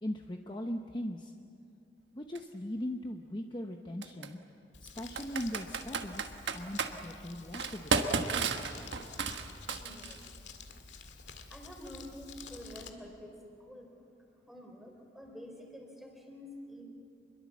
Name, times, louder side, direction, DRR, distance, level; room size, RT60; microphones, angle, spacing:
voice 1, 0.0-1.3 2.1-4.4 4.8-8.2, left 1 dB, 25° left, 4 dB, 0.8 m, -39 dB
Computer keyboard, 2.3-2.4 4.0-4.3 5.2-6.9 7.5-10.2, right 4 dB, 80° right, 1.4 m, -32 dB
Crumpling crinkling, 4.7-12.9, left 5 dB, 80° left, 2.0 m, -50 dB
voice 2, 9.8-10.2 11.5-14.1 14.5-16.8, equal, ahead, 1 dB, 3.6 m, -48 dB
27.0 x 22.0 x 7.4 m, 2.6 s
head